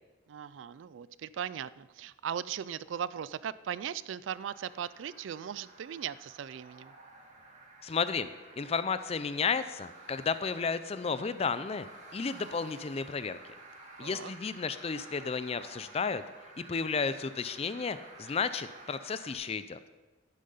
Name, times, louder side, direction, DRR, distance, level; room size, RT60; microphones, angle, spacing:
voice 1, 0.3-6.9 14.0-14.3, right 8 dB, 85° right, 18 dB, 0.3 m, -38 dB
sound 1, 4.3-19.3, right 2 dB, 40° right, 2.0 m, -52 dB
voice 2, 7.8-8.3 8.6-11.9 12.1-13.4 14.0-16.2 16.7-19.8, left 5 dB, 35° left, 13 dB, 0.4 m, -32 dB
11.5 x 10.0 x 5.6 m, 1.3 s
head